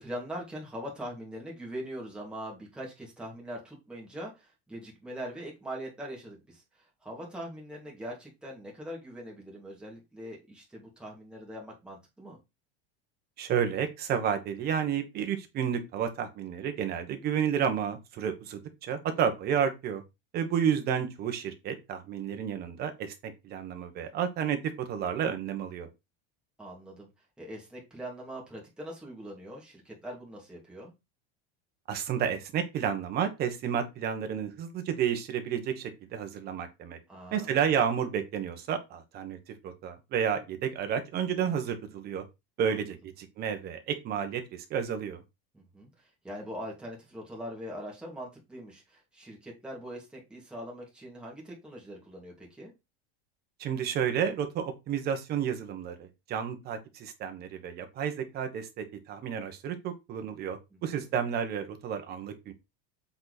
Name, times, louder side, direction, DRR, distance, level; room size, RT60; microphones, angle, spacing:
voice 1, 0.0-12.4 26.6-27.1 27.4-30.9 37.1-37.6 42.7-42.8 45.5-52.7 60.9-61.1, equal, 5° right, 2.7 m, -42 dB
voice 2, 13.4-20.0 20.3-25.9 31.9-37.0 37.3-39.4 39.6-42.2 42.6-45.2 53.6-62.5, right 8 dB, 30° right, 1.5 m, -31 dB
7.7 x 4.5 x 4.2 m
cardioid pair, 170°, 31 cm